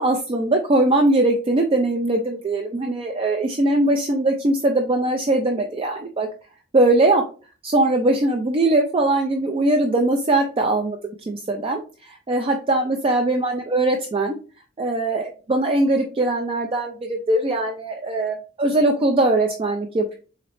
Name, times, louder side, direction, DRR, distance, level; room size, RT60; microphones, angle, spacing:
voice 1, 0.0-6.3 6.7-7.2 7.6-11.0 11.3-14.3 14.8-20.2, right 2 dB, 25° right, 4 dB, 0.4 m, -21 dB
3.8 x 3.1 x 3.0 m, 0.36 s
head